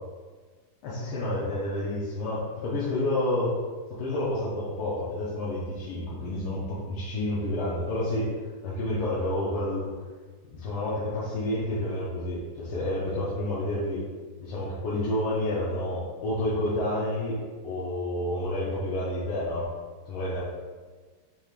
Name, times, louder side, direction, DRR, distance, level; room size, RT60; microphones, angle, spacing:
voice 1, 0.8-3.5 4.0-8.3 8.6-9.9 10.5-14.0 14.4-19.7 20.1-20.4, left 1 dB, 80° left, -8 dB, 1.6 m, -29 dB
5.3 x 3.2 x 2.4 m, 1.4 s
omnidirectional pair, 2.4 m